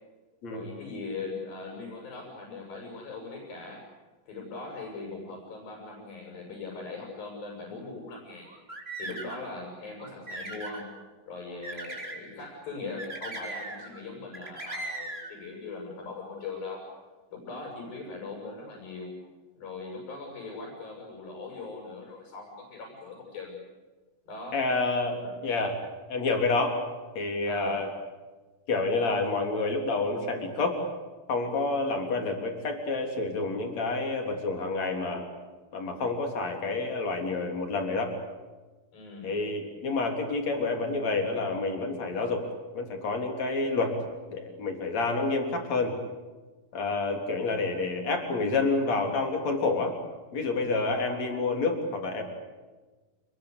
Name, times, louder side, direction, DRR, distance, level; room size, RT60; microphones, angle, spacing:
voice 1, 0.4-3.8 4.3-8.5 9.0-10.9 11.3-16.9 17.3-19.2 19.6-23.6 24.3-24.6 25.2-25.4 27.4-27.9 38.9-39.3, left 3 dB, 65° left, -1 dB, 9.0 m, -40 dB
sound 1, 8.4-9.5 10.0-10.8 11.6-12.2 13.0-14.0 14.3-15.3, right 2 dB, 15° right, 4.0 m, -38 dB
voice 2, 24.5-25.8 26.1-26.8 27.2-27.9 28.7-30.8 31.3-35.3 35.7-38.1 39.2-42.4 42.7-44.0 44.3-46.0 46.7-49.9 50.3-52.2, left 3 dB, 45° left, 3 dB, 4.6 m, -28 dB
29.0 x 22.0 x 8.4 m, 1.3 s
omnidirectional pair, 4.4 m